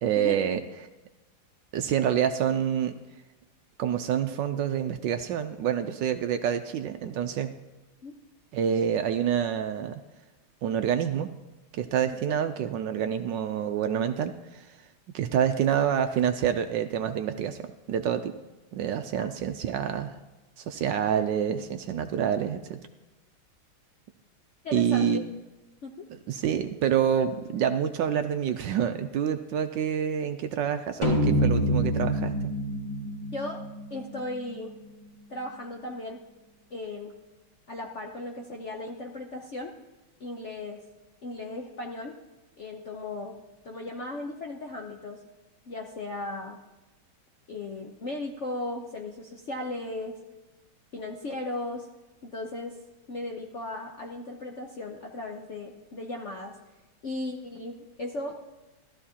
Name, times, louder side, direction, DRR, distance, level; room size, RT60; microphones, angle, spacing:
voice 1, 0.0-0.6 1.7-2.9 3.8-7.5 8.5-10.0 10.6-11.3 11.7-14.8 15.1-17.6 17.9-18.3 18.7-20.1 20.6-22.8 24.7-25.3 26.3-32.3, right 9 dB, 75° right, 8 dB, 1.1 m, -27 dB
voice 2, 24.6-25.2 25.8-26.1 33.3-33.6 33.9-34.7 35.3-36.2 36.7-37.1 37.7-39.7 40.2-40.8 41.2-42.2 42.6-43.4 43.6-45.2 45.7-46.6 47.5-50.2 50.9-51.9 52.2-52.8 53.1-56.6 57.0-58.4, left 2 dB, 60° left, 1 dB, 0.7 m, -36 dB
sound 1, 31.0-34.5, equal, 15° left, 1.4 m, -27 dB
15.5 x 13.0 x 2.8 m, 1.1 s
omnidirectional pair, 2.3 m